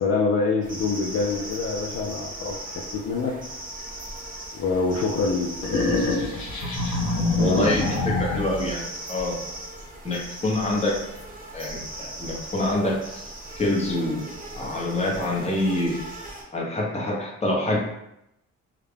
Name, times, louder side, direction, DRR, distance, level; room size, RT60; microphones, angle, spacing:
voice 1, 0.0-3.3 4.5-5.5 7.4-7.7, left 4 dB, 50° left, -2 dB, 0.4 m, -25 dB
sound 1, 0.6-16.4, right 1 dB, 25° right, 0.8 m, -38 dB
sound 2, 5.6-8.7, left 2 dB, 85° left, 0.7 m, -25 dB
voice 2, 7.4-9.3 10.0-10.9 11.5-13.2 13.6-14.2 14.5-15.9 16.5-17.8, left 1 dB, 20° left, -3 dB, 0.8 m, -26 dB
2.4 x 2.1 x 3.2 m, 0.83 s
cardioid pair, 90°, 31 cm